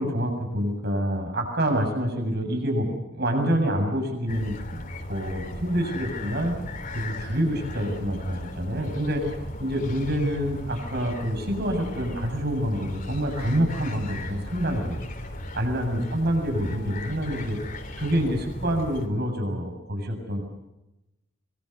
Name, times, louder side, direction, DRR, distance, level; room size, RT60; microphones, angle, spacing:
voice 1, 0.0-6.5 6.9-9.3 9.6-15.0 15.6-17.6 18.0-20.4, equal, 60° right, 4 dB, 7.4 m, -27 dB
sound 1, 4.3-19.1, left 1 dB, 45° left, 3.7 m, -37 dB
24.5 x 23.5 x 6.7 m, 0.96 s
head